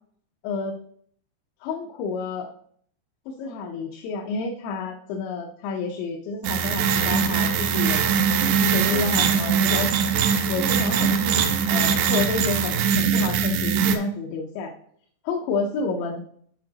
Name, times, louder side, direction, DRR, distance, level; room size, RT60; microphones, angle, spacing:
voice 1, 0.4-0.8 1.6-2.5 3.3-8.0 8.6-9.9 10.5-14.7 15.2-16.2, left 4 dB, 85° left, 0 dB, 3.1 m, -29 dB
sound 1, 6.4-14.0, right 7 dB, 85° right, 2.9 m, -22 dB
12.5 x 4.7 x 2.8 m, 0.62 s
omnidirectional pair, 5.1 m